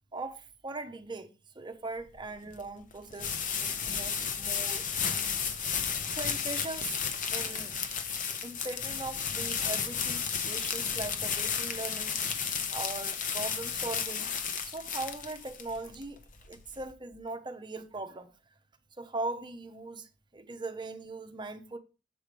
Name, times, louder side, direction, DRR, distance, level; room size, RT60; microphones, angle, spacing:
voice 1, 0.1-7.7 8.4-12.4 12.7-14.3 14.6-16.2 16.5-18.3 19.0-21.8, right 3 dB, 25° right, 0.8 m, -40 dB
sound 1, 2.0-16.9, left 7 dB, 45° left, 0.8 m, -33 dB
7.5 x 4.8 x 5.0 m
head